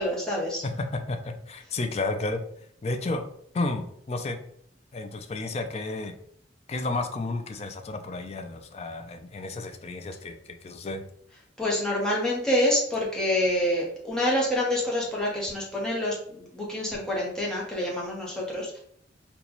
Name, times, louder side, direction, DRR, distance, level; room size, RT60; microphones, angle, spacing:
voice 1, 0.0-0.6 11.6-18.8, left 1 dB, 5° left, -5 dB, 0.9 m, -27 dB
voice 2, 0.6-2.4 2.8-3.3 3.5-4.4 4.9-6.1 6.7-11.0, left 2 dB, 35° left, 6 dB, 0.4 m, -32 dB
3.9 x 2.2 x 2.9 m, 0.66 s
head